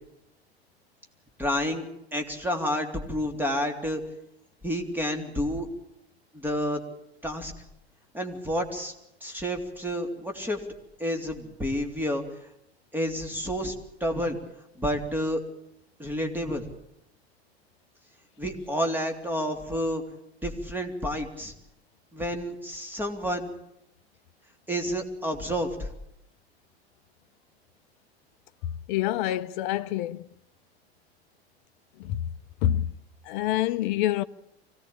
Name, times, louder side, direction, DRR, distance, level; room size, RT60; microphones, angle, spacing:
voice 1, 1.4-1.8 2.1-4.0 4.6-5.7 6.3-6.8 7.2-7.5 8.1-8.9 9.2-10.6 11.0-12.5 12.9-13.7 14.0-14.4 14.8-15.4 16.0-16.7 18.4-20.0 20.4-21.5 22.1-23.5 24.7-25.9, equal, 5° right, 3.4 m, -29 dB
voice 2, 28.9-30.3 32.0-32.2 32.6-32.9 33.3-34.2, left 13 dB, 50° left, 0.9 m, -26 dB
24.5 x 17.5 x 8.8 m
figure-of-eight pair, 85°, 32 cm